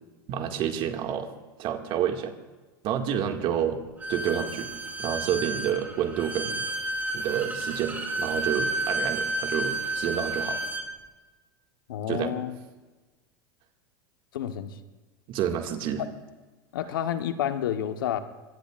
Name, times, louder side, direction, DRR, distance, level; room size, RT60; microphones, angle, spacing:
voice 1, 0.3-1.3 1.6-2.3 2.8-3.8 4.1-4.7 5.0-6.6 7.1-10.6 12.1-12.3 15.3-16.0, right 9 dB, 50° right, 4 dB, 2.1 m, -29 dB
Bowed string instrument, 4.0-10.9, right 2 dB, 15° right, 3.1 m, -31 dB
voice 2, 11.9-12.5 14.3-14.7 16.7-18.2, left 10 dB, 80° left, 9 dB, 1.2 m, -29 dB
25.0 x 22.0 x 2.5 m, 1.2 s
hypercardioid pair, 100°, 11 cm